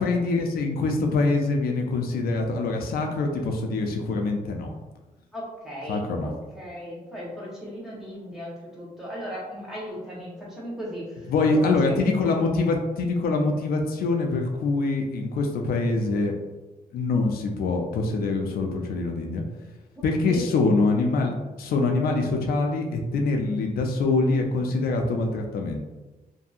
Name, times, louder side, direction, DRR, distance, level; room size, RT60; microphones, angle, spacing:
voice 1, 0.0-4.7 5.9-6.3 11.3-16.3 16.9-19.4 20.0-25.8, left 3 dB, 85° left, 3 dB, 0.4 m, -24 dB
voice 2, 5.3-11.9 20.0-20.4, equal, ahead, -7 dB, 0.8 m, -37 dB
2.7 x 2.6 x 2.3 m, 1.1 s
wide cardioid pair, 175°, 15 cm